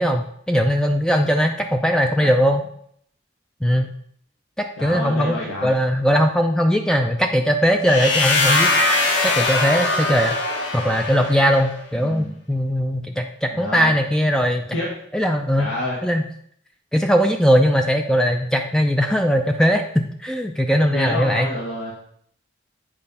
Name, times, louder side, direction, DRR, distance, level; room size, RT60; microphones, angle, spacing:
voice 1, 0.0-2.6 3.6-3.9 4.6-8.7 9.2-10.3 10.7-14.7 15.1-15.7 16.0-16.2 16.9-19.8 20.2-21.5, equal, 5° left, 4 dB, 0.4 m, -19 dB
voice 2, 4.8-5.7 11.9-12.3 13.5-14.0 14.7-14.9 15.6-16.0 20.9-21.9, left 1 dB, 85° left, -4 dB, 1.8 m, -28 dB
sound 1, 7.9-11.7, left 2 dB, 60° left, 1.4 m, -21 dB
8.9 x 4.2 x 5.5 m, 0.67 s
head